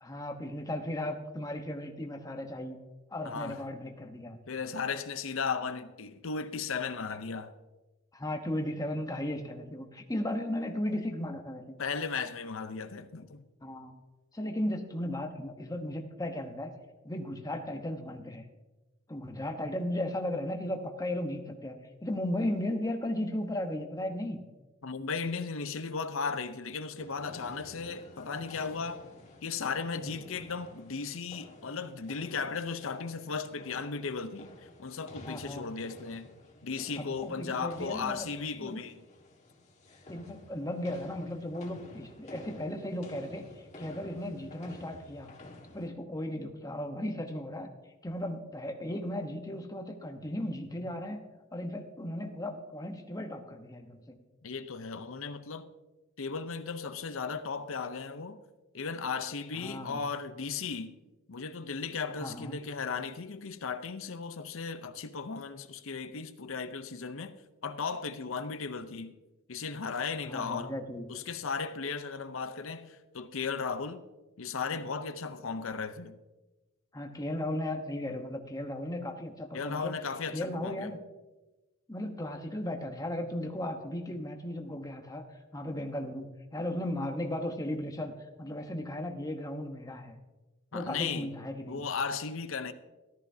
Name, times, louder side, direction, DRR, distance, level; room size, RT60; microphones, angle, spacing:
voice 1, 0.0-2.8 3.1-4.4 8.1-11.7 13.6-13.9 14.3-16.7 17.0-18.4 19.1-24.4 35.2-35.7 37.0-38.3 38.6-38.8 40.1-43.5 43.8-45.3 45.7-47.7 48.0-51.2 51.5-54.2 59.5-60.0 62.2-62.6 70.2-71.1 76.9-80.0 80.3-81.0 81.9-85.3 85.5-88.1 88.4-90.2 90.7-91.8, left 1 dB, 15° left, 1.0 m, -36 dB
voice 2, 3.2-3.6 4.5-7.5 11.8-13.4 24.8-29.1 29.4-36.3 36.6-39.0 54.4-55.7 56.2-58.4 58.7-61.0 61.3-67.3 67.6-69.1 69.5-70.7 71.1-74.0 74.4-76.2 79.5-81.0 90.7-91.3 91.7-92.7, left 5 dB, 70° left, 0.7 m, -36 dB
sound 1, 27.0-45.9, left 1 dB, 35° left, 1.6 m, -51 dB
13.5 x 13.5 x 2.7 m
head